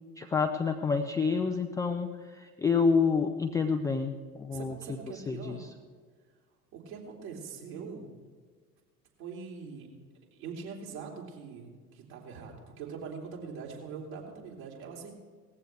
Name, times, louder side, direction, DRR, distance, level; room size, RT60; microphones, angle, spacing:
voice 1, 0.2-4.7 5.3-5.6, left 5 dB, 10° left, 5 dB, 0.3 m, -28 dB
voice 2, 4.5-5.6 6.7-8.1 9.2-9.9 10.3-15.2, right 5 dB, 60° right, -1 dB, 3.3 m, -43 dB
18.0 x 15.0 x 3.4 m, 1.5 s
figure-of-eight pair, 70°, 47 cm